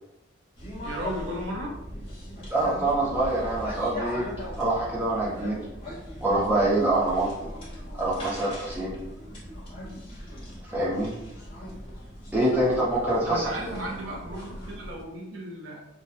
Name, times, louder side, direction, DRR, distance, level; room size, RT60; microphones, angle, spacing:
sound 1, 0.6-15.0, left 1 dB, 25° left, 0.9 m, -39 dB
voice 1, 0.8-1.7 13.3-15.8, equal, 70° right, -2 dB, 0.4 m, -35 dB
voice 2, 2.5-4.3 4.6-5.6 6.2-7.3 7.9-9.0 10.6-11.1 12.3-13.8, right 1 dB, 10° right, -8 dB, 0.7 m, -25 dB
2.8 x 2.1 x 2.3 m, 0.90 s
head